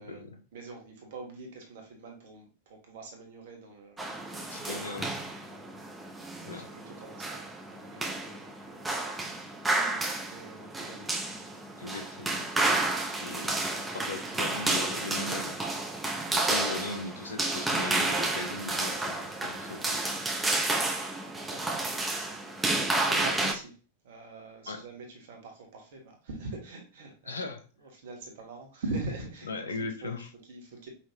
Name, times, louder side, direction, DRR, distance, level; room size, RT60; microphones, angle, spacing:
voice 1, 0.0-0.4 4.5-5.1 6.4-6.7 11.8-12.5 13.2-15.6 16.1-20.0 24.7-24.8 27.3-27.6 29.4-30.3, left 3 dB, 70° left, 7 dB, 0.7 m, -39 dB
voice 2, 0.5-4.8 5.5-5.7 6.4-9.0 10.2-11.2 21.5-21.7 22.1-22.4 22.7-23.7 24.0-27.5 27.8-30.9, right 2 dB, 55° right, 2 dB, 1.5 m, -43 dB
sound 1, 4.0-23.5, right 2 dB, 10° right, 0.8 m, -31 dB
5.7 x 3.0 x 2.8 m, 0.36 s
figure-of-eight pair, 90°, 0 cm